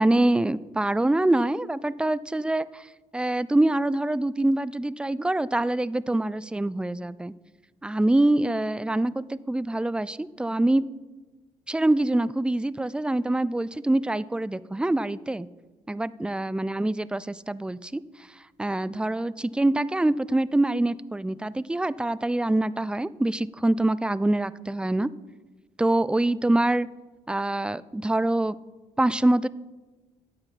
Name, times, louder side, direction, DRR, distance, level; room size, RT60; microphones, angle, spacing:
voice 1, 0.0-2.9 3.1-7.3 7.8-10.8 11.7-15.5 15.9-18.0 18.6-25.1 25.8-26.9 27.3-28.6 29.0-29.5, right 1 dB, 5° right, 18 dB, 0.4 m, -25 dB
13.0 x 8.7 x 4.1 m, 1.2 s
hypercardioid pair, 50°, 15 cm